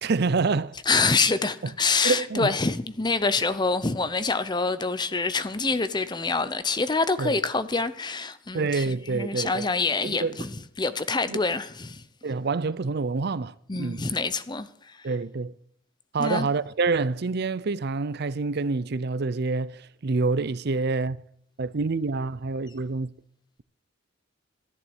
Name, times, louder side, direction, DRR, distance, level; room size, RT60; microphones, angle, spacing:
voice 1, 0.0-0.7 1.6-1.7 2.0-2.5 7.2-7.4 8.5-9.7 10.0-10.4 11.3-11.4 12.2-14.0 15.0-15.5 16.1-21.2 21.6-23.1, right 4 dB, 50° right, 0.5 m, -27 dB
voice 2, 0.9-10.5 10.8-12.0 13.7-15.0 16.2-16.5, left 4 dB, 20° left, 0.7 m, -26 dB
13.5 x 11.0 x 8.1 m
head